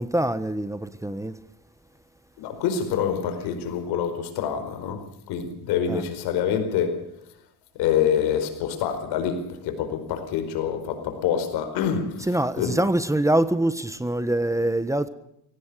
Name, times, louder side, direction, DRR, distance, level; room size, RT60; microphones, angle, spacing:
voice 1, 0.0-1.4 5.9-6.0 12.3-15.1, right 1 dB, 10° right, 1.4 m, -24 dB
voice 2, 2.4-7.2 7.7-12.3 12.6-12.8, left 8 dB, 80° left, 4.7 m, -26 dB
23.0 x 18.0 x 6.9 m
cardioid pair, 100°, 38 cm